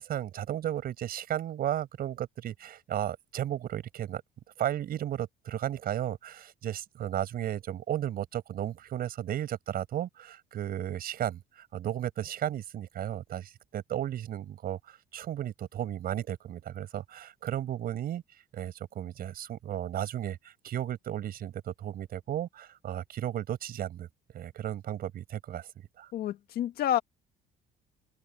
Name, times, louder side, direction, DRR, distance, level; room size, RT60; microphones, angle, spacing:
voice 1, 0.0-4.2 4.6-18.2 18.5-24.1 24.3-25.7 26.0-26.1, right 11 dB, 60° right, 7.0 m, -34 dB
voice 2, 26.1-27.0, left 11 dB, 70° left, 1.6 m, -29 dB
open air
cardioid pair, 110°, 17 cm